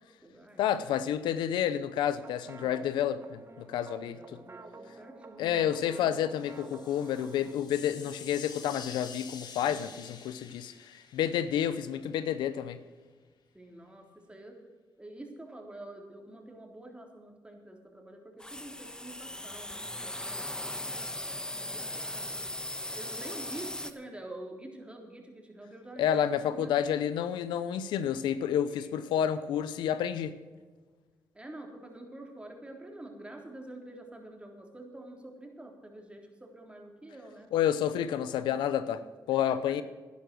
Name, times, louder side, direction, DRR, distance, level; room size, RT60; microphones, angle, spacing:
voice 1, 0.0-0.6 2.6-2.9 4.0-6.2 9.6-9.9 11.6-12.0 13.5-14.6 15.0-22.4 22.9-26.7 28.5-29.1 31.3-37.5 39.7-39.8, right 1 dB, 15° right, 3.6 m, -47 dB
voice 2, 0.6-4.2 5.4-12.8 26.0-30.3 37.5-39.0 39.3-39.8, left 9 dB, 90° left, 0.7 m, -30 dB
sound 1, 2.0-7.5, right 3 dB, 35° right, 1.1 m, -50 dB
sound 2, 6.3-12.2, left 6 dB, 70° left, 1.7 m, -48 dB
sound 3, 18.4-23.9, left 1 dB, 10° left, 1.3 m, -38 dB
11.5 x 10.5 x 6.2 m
supercardioid pair, 60°, 8 cm